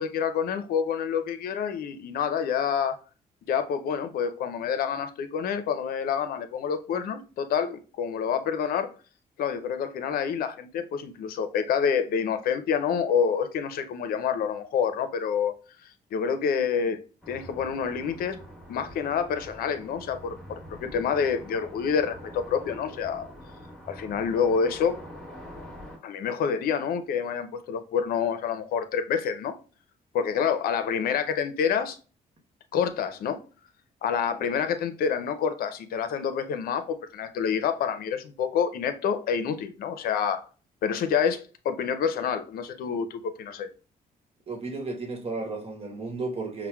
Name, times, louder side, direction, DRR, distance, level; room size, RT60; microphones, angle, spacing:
voice 1, 0.0-3.0 3.5-8.9 9.4-15.5 16.1-17.0 17.3-18.4 18.7-23.3 23.9-25.0 26.0-29.6 30.1-32.0 32.7-33.4 34.0-40.5 40.8-43.7, left 7 dB, 75° left, 0.5 m, -27 dB
sound 1, 17.2-26.0, equal, ahead, 1.4 m, -45 dB
voice 2, 44.5-46.7, right 3 dB, 40° right, 1.1 m, -33 dB
5.6 x 2.1 x 2.2 m
cardioid pair, 95°, 15 cm